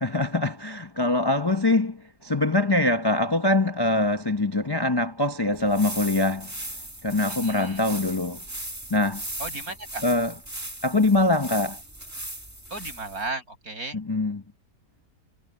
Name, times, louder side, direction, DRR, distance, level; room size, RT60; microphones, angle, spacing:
voice 1, 0.0-6.5 7.0-8.4 8.9-9.2 10.0-10.3 10.8-11.8 13.9-14.4, left 2 dB, 20° left, 0.7 m, -23 dB
sound 1, 5.5-13.3, right 1 dB, 10° right, 1.6 m, -38 dB
voice 2, 7.4-7.8 9.4-10.0 12.7-14.0, right 3 dB, 55° right, 8.2 m, -34 dB
omnidirectional pair, 1.8 m